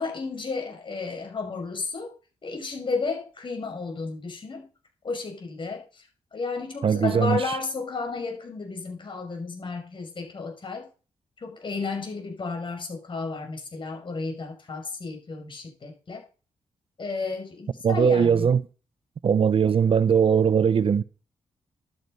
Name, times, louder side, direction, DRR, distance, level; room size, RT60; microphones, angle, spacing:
voice 1, 0.0-2.1 2.4-4.7 5.0-10.9 11.4-16.2 17.0-18.5, left 4 dB, 50° left, 6.5 m, -33 dB
voice 2, 6.8-7.5 17.8-18.6 19.2-21.0, right 7 dB, 55° right, 0.8 m, -20 dB
13.0 x 12.5 x 5.6 m
cardioid pair, 70°, 11 cm